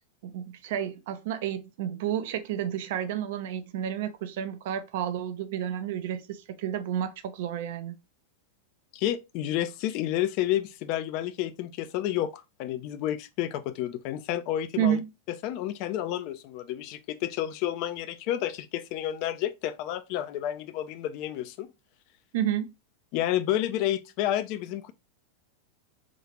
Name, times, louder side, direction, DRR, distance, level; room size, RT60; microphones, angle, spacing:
voice 1, 0.2-8.0 14.8-15.1 22.3-22.7, right 10 dB, 55° right, 0.4 m, -31 dB
voice 2, 8.9-15.0 15.3-21.7 23.1-24.9, left 12 dB, 45° left, 0.4 m, -30 dB
3.7 x 2.4 x 3.1 m
figure-of-eight pair, 90°, 0 cm